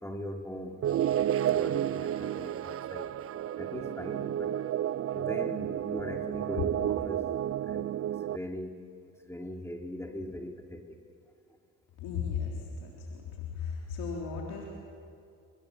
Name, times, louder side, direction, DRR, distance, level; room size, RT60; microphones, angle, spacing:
voice 1, 0.0-1.1 1.4-3.1 3.6-4.6 5.1-7.2 7.7-7.9 8.3-8.8 9.3-10.8, left 1 dB, 5° left, 3 dB, 3.0 m, -40 dB
sound 1, 0.8-8.4, right 11 dB, 40° right, 0.5 m, -31 dB
voice 2, 12.0-14.6, left 6 dB, 85° left, -2 dB, 3.5 m, -36 dB
25.0 x 22.0 x 7.5 m, 2.4 s
supercardioid pair, 60°, 36 cm